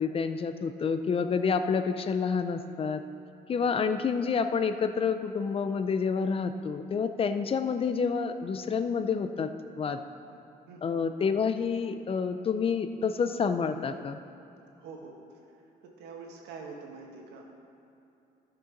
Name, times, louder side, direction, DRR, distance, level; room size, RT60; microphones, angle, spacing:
voice 1, 0.0-3.0 3.5-9.5 9.8-10.0 10.8-14.2, left 5 dB, 35° left, 9 dB, 0.5 m, -28 dB
voice 2, 3.6-4.0 7.4-7.5 10.3-11.2 14.8-17.5, right 4 dB, 85° right, 1 dB, 1.7 m, -47 dB
15.0 x 6.8 x 3.9 m, 2.8 s
cardioid pair, 110°, 17 cm